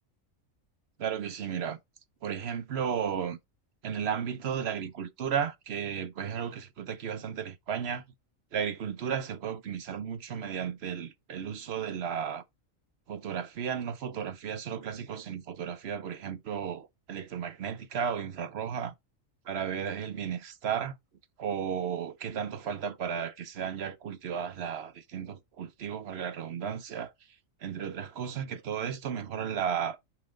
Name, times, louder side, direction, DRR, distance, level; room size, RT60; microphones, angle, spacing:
voice 1, 1.0-1.8 2.2-3.4 3.8-8.0 8.5-12.4 13.1-18.9 19.5-20.9 21.4-27.1 27.6-30.0, right 8 dB, 55° right, 1.0 m, -34 dB
5.8 x 5.0 x 3.8 m
omnidirectional pair, 1.4 m